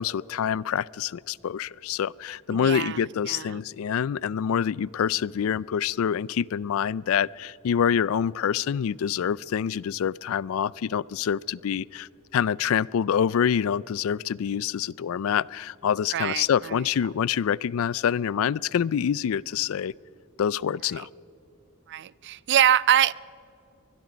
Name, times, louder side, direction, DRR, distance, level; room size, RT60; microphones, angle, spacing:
voice 1, 0.0-19.9 20.4-21.1, left 8 dB, 70° left, 24 dB, 0.4 m, -26 dB
voice 2, 2.5-3.6 16.1-16.8 21.9-23.1, right 10 dB, 55° right, 22 dB, 0.4 m, -24 dB
24.5 x 20.5 x 5.1 m, 2.8 s
head